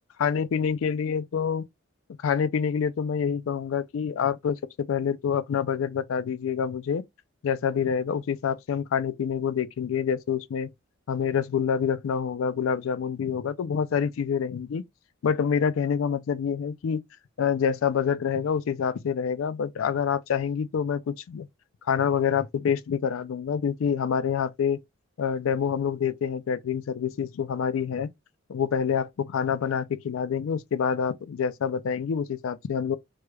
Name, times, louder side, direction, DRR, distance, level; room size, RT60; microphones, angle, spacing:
voice 1, 0.2-1.6 2.2-7.0 7.4-10.7 11.1-14.8 15.2-17.0 17.4-21.5 21.9-24.8 25.2-28.1 28.5-33.0, left 7 dB, 75° left, 0.3 m, -27 dB
3.2 x 3.0 x 2.2 m
head